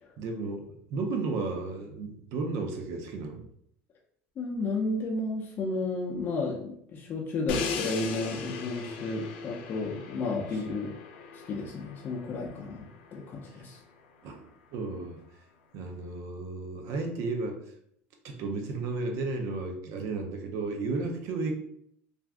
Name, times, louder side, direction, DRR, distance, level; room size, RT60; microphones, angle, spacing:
voice 1, 0.2-3.4 13.5-13.6 14.2-14.4 14.7-15.2 15.7-17.6 18.2-21.5, right 3 dB, 60° right, 3 dB, 0.6 m, -33 dB
voice 2, 4.4-10.9 11.5-12.9 13.1-13.8, left 3 dB, 35° left, -3 dB, 0.5 m, -32 dB
Crash cymbal, 7.5-13.5, left 5 dB, 90° left, 0.4 m, -37 dB
2.5 x 2.3 x 3.4 m, 0.69 s
supercardioid pair, 125°, 6 cm